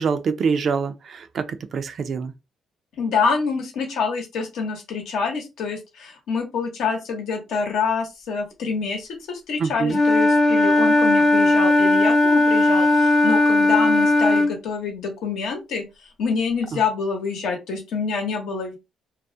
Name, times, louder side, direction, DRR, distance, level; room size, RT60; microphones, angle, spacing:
voice 1, 0.0-1.5 1.7-2.3 9.6-10.0 16.7-16.8, right 5 dB, 55° right, 0.4 m, -25 dB
voice 2, 3.0-15.8 16.2-18.8, left 5 dB, 80° left, 0.8 m, -26 dB
Wind instrument woodwind instrument, 9.9-14.5, left 2 dB, 45° left, 0.8 m, -17 dB
2.3 x 2.0 x 2.6 m
cardioid pair, 90°, 0 cm